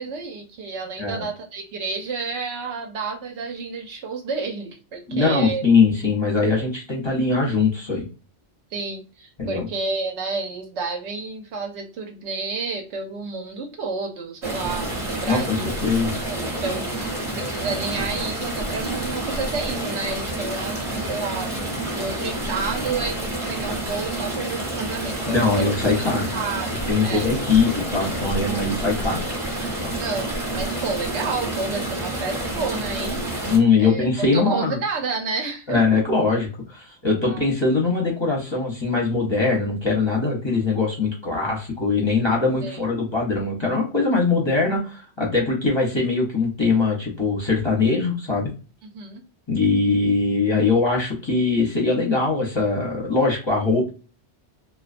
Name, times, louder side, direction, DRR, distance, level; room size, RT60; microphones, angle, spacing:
voice 1, 0.0-5.6 8.7-15.7 16.2-26.0 26.3-27.3 29.9-33.2 33.8-35.8 37.3-37.5 42.6-42.8 48.8-49.2, right 4 dB, 75° right, 3 dB, 0.9 m, -30 dB
voice 2, 5.1-8.0 9.4-9.7 15.2-16.1 25.3-26.3 26.9-29.2 29.8-29.9 33.5-34.8 35.7-48.5 49.5-53.9, left 4 dB, 30° left, -3 dB, 0.6 m, -21 dB
sound 1, 14.4-33.6, right 1 dB, 30° right, 0.9 m, -29 dB
2.3 x 2.2 x 2.4 m, 0.34 s
omnidirectional pair, 1.2 m